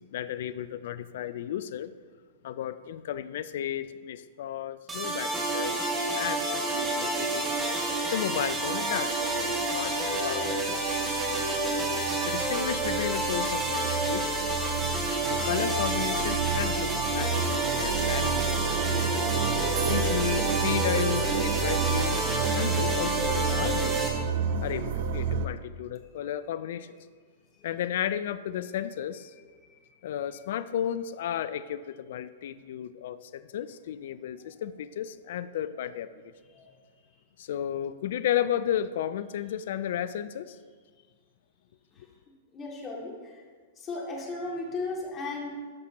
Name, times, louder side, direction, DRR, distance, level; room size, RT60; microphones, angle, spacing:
voice 1, 0.0-1.9 2.4-5.8 6.1-7.4 8.1-10.9 12.2-14.3 15.3-17.5 17.8-18.4 18.9-19.1 19.9-22.2 22.5-24.1 24.6-26.9 27.6-29.3 30.0-36.1 37.4-40.6, left 10 dB, 65° left, 14 dB, 0.3 m, -33 dB
sound 1, 4.9-24.1, right 2 dB, 15° right, 1.8 m, -29 dB
sound 2, 8.5-8.6 9.1-25.5, right 6 dB, 60° right, 0.5 m, -31 dB
voice 2, 29.4-29.7 36.5-36.7 41.9-42.1 42.5-43.4 43.8-45.5, left 3 dB, 25° left, -2 dB, 2.3 m, -36 dB
12.5 x 5.8 x 2.9 m, 1.6 s
hypercardioid pair, 110°, 0 cm